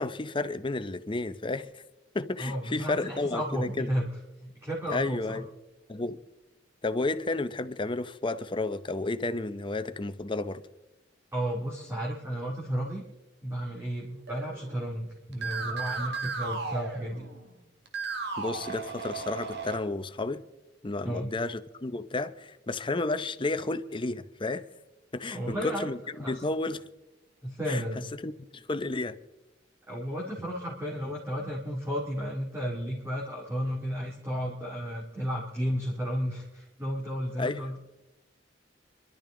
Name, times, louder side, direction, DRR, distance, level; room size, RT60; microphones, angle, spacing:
voice 1, 0.0-1.8 2.1-3.9 4.9-5.5 5.9-6.2 6.8-10.6 18.4-20.4 20.8-24.7 25.1-26.0 26.3-26.9 27.7-27.8 28.2-29.2 37.4-37.6, left 2 dB, 30° left, 0.7 m, -32 dB
voice 2, 2.4-4.1 4.4-5.4 11.3-13.0 13.4-17.3 21.0-21.3 25.3-25.9 26.2-26.4 27.4-28.1 29.9-37.8, equal, 15° right, 2.3 m, -33 dB
sound 1, 14.3-15.0 15.3-17.5 17.9-19.8, right 4 dB, 65° right, 1.9 m, -35 dB
26.5 x 12.0 x 3.8 m
head